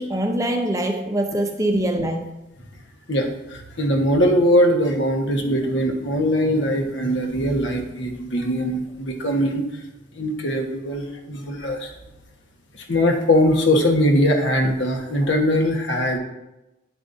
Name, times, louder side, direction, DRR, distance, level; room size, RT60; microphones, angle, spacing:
voice 1, 0.0-2.3, right 1 dB, 15° right, 4 dB, 0.6 m, -23 dB
voice 2, 3.1-9.6 10.2-11.9 12.8-16.2, equal, 70° left, 2 dB, 1.4 m, -21 dB
10.0 x 7.8 x 2.7 m, 0.94 s
head